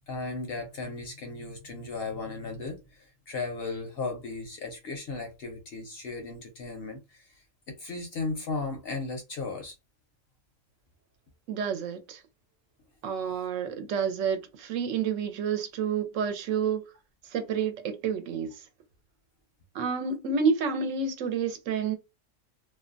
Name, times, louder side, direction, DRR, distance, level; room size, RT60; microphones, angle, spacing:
voice 1, 0.0-9.8, left 3 dB, 60° left, 0.7 m, -36 dB
voice 2, 11.5-12.2 13.0-16.8 17.2-18.7 19.7-21.9, right 6 dB, 75° right, 0.9 m, -29 dB
2.4 x 2.1 x 2.4 m
omnidirectional pair, 1.4 m